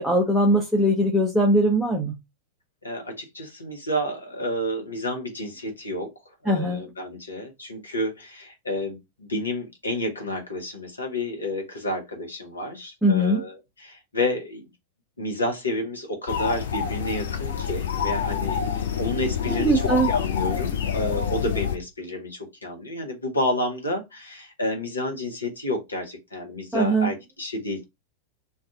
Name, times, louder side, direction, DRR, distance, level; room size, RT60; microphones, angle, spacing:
voice 1, 0.0-2.1 6.5-6.8 13.0-13.4 19.5-20.1 26.7-27.1, right 1 dB, 5° right, 0.6 m, -21 dB
voice 2, 2.8-6.1 6.4-14.7 15.2-27.8, left 1 dB, 75° left, 0.9 m, -30 dB
sound 1, 16.3-21.8, left 7 dB, 60° left, 0.5 m, -27 dB
2.6 x 2.4 x 3.5 m
figure-of-eight pair, 90°, 0 cm